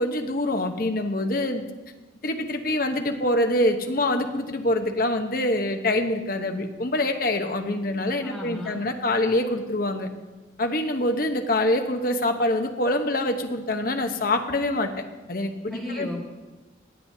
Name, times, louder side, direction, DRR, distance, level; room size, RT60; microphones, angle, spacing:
voice 1, 0.0-1.6 2.2-10.1 10.6-16.1, left 1 dB, 50° left, 5 dB, 0.9 m, -25 dB
voice 2, 8.2-8.8 15.7-16.2, left 1 dB, ahead, -5 dB, 1.8 m, -34 dB
17.5 x 8.9 x 2.7 m, 1.1 s
head